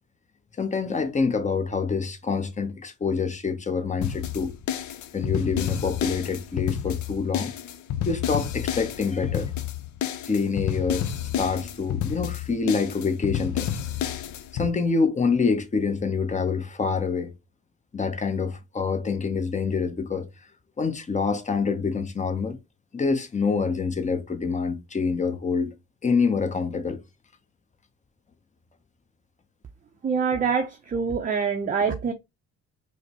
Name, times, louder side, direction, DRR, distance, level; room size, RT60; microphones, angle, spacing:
voice 1, 0.6-4.6 5.1-7.5 8.1-9.5 10.3-13.7 14.5-17.3 17.9-20.3 20.8-22.6 22.9-25.7 26.0-27.0, left 5 dB, 25° left, 0.8 m, -26 dB
sound 1, 4.0-14.7, left 10 dB, 70° left, 0.5 m, -30 dB
voice 2, 30.0-32.1, right 5 dB, 25° right, 0.5 m, -25 dB
4.9 x 2.1 x 2.8 m
cardioid pair, 90°, 30 cm